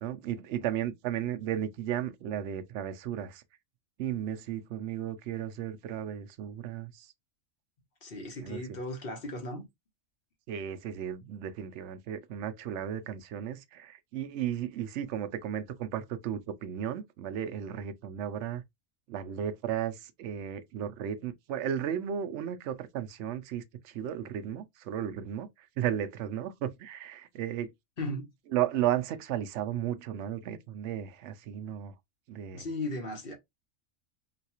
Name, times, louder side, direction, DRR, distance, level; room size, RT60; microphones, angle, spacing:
voice 1, 0.0-3.4 4.0-7.1 8.4-8.6 10.5-18.6 19.1-27.7 28.5-31.9 32.3-32.7, right 10 dB, 65° right, 0.8 m, -34 dB
voice 2, 8.0-9.6 28.0-28.3 32.5-33.3, left 1 dB, 45° left, 1.2 m, -36 dB
3.9 x 2.3 x 2.8 m
omnidirectional pair, 1.4 m